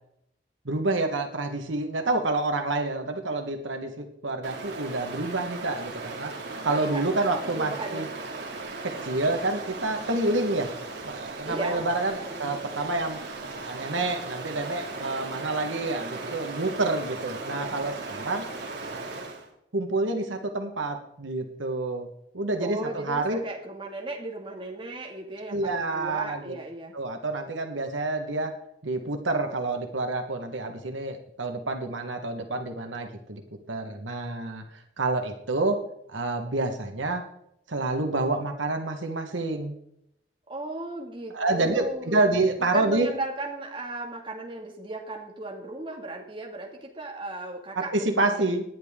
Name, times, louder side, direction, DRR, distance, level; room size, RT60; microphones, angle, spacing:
voice 1, 0.6-6.3 6.6-8.1 8.8-10.7 11.0-13.2 13.6-18.4 19.7-22.1 22.3-23.4 25.5-26.5 26.9-28.5 28.8-33.4 33.7-34.6 35.0-35.8 36.1-37.2 37.7-39.7 41.3-43.1 47.9-48.6, right 2 dB, 85° right, 5 dB, 1.5 m, -28 dB
Stream, 4.4-19.5, right 3 dB, 65° right, 2.5 m, -37 dB
voice 2, 6.6-7.0 7.5-8.1 11.4-11.9 12.2-12.6 22.6-26.9 40.5-42.3 42.7-48.4, right 2 dB, 25° right, 0 dB, 2.2 m, -35 dB
18.5 x 10.0 x 3.7 m, 0.75 s
head